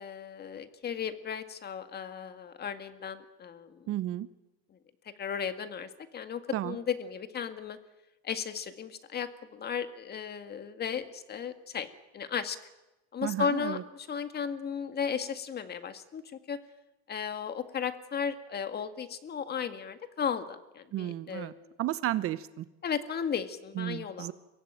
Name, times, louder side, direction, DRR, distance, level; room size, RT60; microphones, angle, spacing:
voice 1, 0.0-3.9 5.2-7.8 8.2-11.9 12.1-12.6 13.1-16.6 17.1-21.7 22.8-24.3, left 7 dB, 30° left, 9 dB, 1.9 m, -35 dB
voice 2, 3.9-4.3 6.5-6.8 13.2-13.8 20.9-21.5 21.8-22.7 23.7-24.3, right 13 dB, 45° right, 15 dB, 1.0 m, -33 dB
23.5 x 16.5 x 9.2 m, 1.0 s
supercardioid pair, 115°, 32 cm